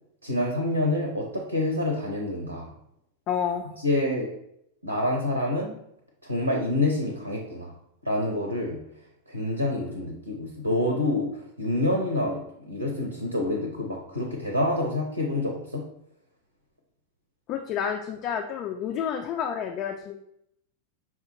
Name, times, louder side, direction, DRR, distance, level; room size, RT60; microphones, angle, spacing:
voice 1, 0.2-2.7 3.8-4.3 4.8-5.7 6.2-7.7 8.0-8.8 9.3-11.3 11.6-15.8, left 1 dB, 90° right, 0 dB, 0.7 m, -27 dB
voice 2, 3.3-3.7 17.5-20.2, left 8 dB, 40° left, 3 dB, 0.3 m, -29 dB
5.8 x 2.4 x 2.9 m, 0.75 s
figure-of-eight pair, 90°, 0 cm